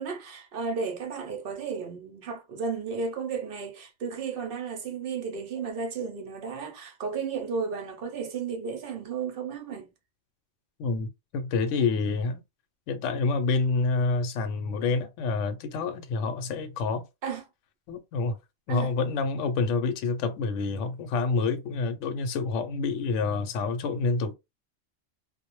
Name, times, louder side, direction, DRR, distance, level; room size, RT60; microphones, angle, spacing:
voice 1, 0.0-9.9 17.2-17.4 18.7-18.9, right 5 dB, 60° right, 0.7 m, -33 dB
voice 2, 10.8-12.4 12.9-17.1 17.9-18.4 18.7-24.3, left 4 dB, 75° left, 0.9 m, -28 dB
2.2 x 2.1 x 2.9 m
omnidirectional pair, 1.3 m